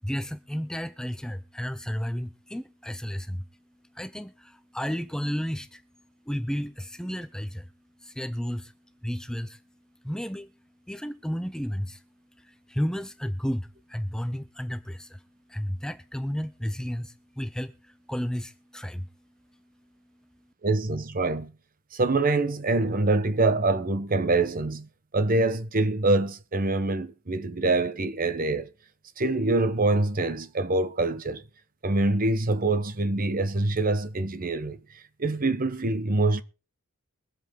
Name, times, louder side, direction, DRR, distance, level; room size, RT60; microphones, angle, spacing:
voice 1, 0.0-3.4 3.9-5.8 6.3-7.7 8.0-8.7 9.0-9.6 10.0-10.5 10.9-12.0 12.4-19.1, equal, 5° left, 0.5 m, -32 dB
voice 2, 20.6-21.5 21.9-24.9 25.1-28.7 29.2-31.4 31.8-34.8 35.2-36.4, right 2 dB, 40° right, 1.0 m, -25 dB
22.5 x 8.1 x 3.7 m
head